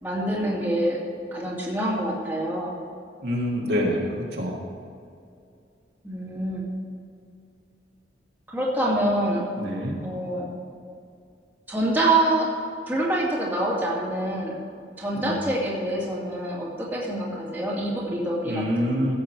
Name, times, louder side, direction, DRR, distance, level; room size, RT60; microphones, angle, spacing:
voice 1, 0.0-1.0 1.3-2.7 6.0-6.6 8.5-9.4 10.0-10.5 11.7-12.4 12.9-14.5 15.0-19.0, right 1 dB, 10° right, -5 dB, 2.3 m, -26 dB
voice 2, 3.2-4.6 9.6-10.0 15.1-15.3 18.4-19.1, equal, 60° right, -2 dB, 1.9 m, -26 dB
15.5 x 7.7 x 4.6 m, 2.4 s
head